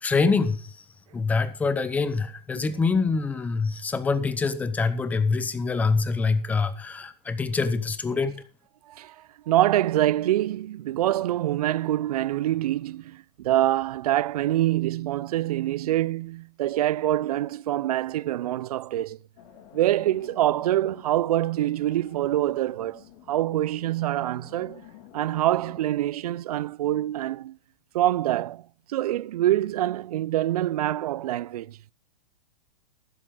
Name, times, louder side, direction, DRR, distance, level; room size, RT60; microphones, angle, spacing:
voice 1, 0.0-0.7 1.1-8.4, left 4 dB, 5° left, 0.8 m, -25 dB
voice 2, 9.5-19.2 19.7-24.8 25.1-27.6 27.9-28.6 28.9-31.8, right 14 dB, 60° right, 0.5 m, -25 dB
sound 1, 19.4-25.9, left 10 dB, 40° left, 3.0 m, -51 dB
13.5 x 12.5 x 3.8 m
supercardioid pair, 165°, 21 cm